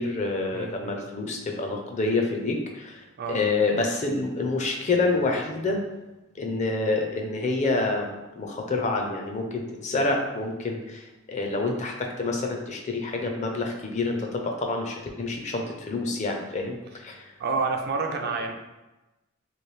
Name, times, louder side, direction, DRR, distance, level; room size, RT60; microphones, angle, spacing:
voice 1, 0.0-3.0 3.3-5.8 6.4-16.8 17.0-17.2, left 3 dB, 35° left, 2 dB, 0.4 m, -27 dB
voice 2, 0.5-1.0 3.2-3.4 17.4-18.5, right 4 dB, 50° right, 3 dB, 0.4 m, -29 dB
3.0 x 2.5 x 3.1 m, 1.0 s
head